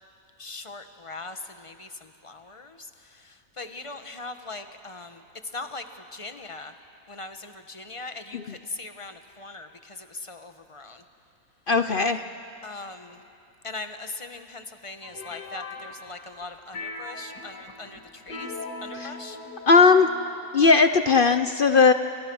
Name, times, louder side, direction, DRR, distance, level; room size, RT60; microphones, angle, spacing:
voice 1, 0.4-5.2 5.5-6.7 7.1-11.0 12.6-13.2 13.6-18.5 18.8-19.4, left 3 dB, 20° left, 8 dB, 1.1 m, -40 dB
voice 2, 11.7-12.2 18.9-19.1 19.7-20.1 20.5-21.9, left 4 dB, 50° left, 9 dB, 0.6 m, -18 dB
sound 1, 15.0-16.4 16.7-20.5, left 3 dB, 85° left, 2.8 m, -40 dB
29.0 x 29.0 x 6.3 m, 2.6 s
omnidirectional pair, 1.7 m